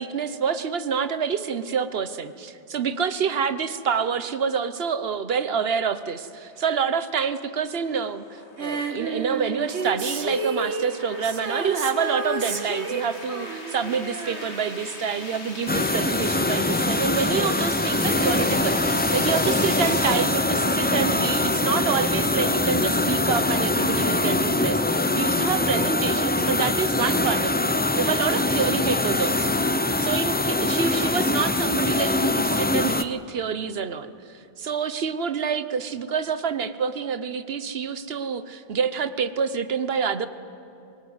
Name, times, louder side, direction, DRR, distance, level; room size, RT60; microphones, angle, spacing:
voice 1, 0.0-29.6 30.0-40.3, right 6 dB, 65° right, 12 dB, 1.1 m, -27 dB
sound 1, 6.5-20.4, left 3 dB, 90° left, 2.3 m, -40 dB
Female singing, 8.6-15.2 15.5-15.6, right 3 dB, 90° right, 1.8 m, -31 dB
sound 2, 15.7-33.0, left 2 dB, 15° left, 0.4 m, -23 dB
24.5 x 18.5 x 9.5 m, 2.7 s
omnidirectional pair, 1.1 m